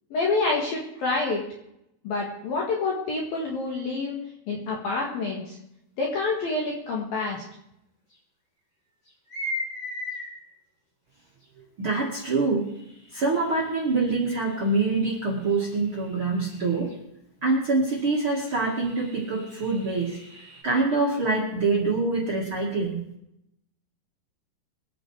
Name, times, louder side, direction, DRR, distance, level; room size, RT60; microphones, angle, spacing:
voice 1, 0.1-1.4 2.0-4.2 4.5-5.6 6.0-7.4, left 3 dB, 55° left, -2 dB, 3.2 m, -27 dB
sound 1, 7.2-7.3 8.1-8.2 9.1-10.3 11.4-11.5 12.7-17.0 17.5-17.6 17.9-20.6, left 1 dB, 30° left, 6.9 m, -40 dB
voice 2, 11.8-12.7 13.1-16.9 17.4-20.2 20.6-23.0, right 3 dB, 45° right, -3 dB, 1.7 m, -25 dB
23.0 x 9.1 x 4.9 m, 0.81 s
omnidirectional pair, 5.6 m